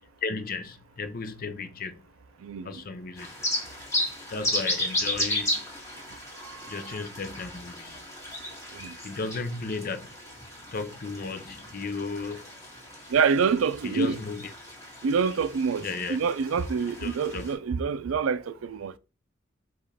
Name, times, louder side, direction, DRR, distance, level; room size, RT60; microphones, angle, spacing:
voice 1, 0.2-2.0 2.6-3.3 4.3-5.5 6.7-8.0 9.0-10.1 10.7-12.4 13.8-14.5 15.8-16.2 17.0-17.5, left 4 dB, 45° left, 0.6 m, -34 dB
voice 2, 2.4-2.8 6.4-7.1 8.7-9.0 13.1-14.2 15.0-19.0, right 5 dB, 80° right, 0.4 m, -27 dB
sound 1, 3.2-17.5, left 1 dB, 15° left, 1.7 m, -34 dB
5.0 x 2.4 x 4.1 m
head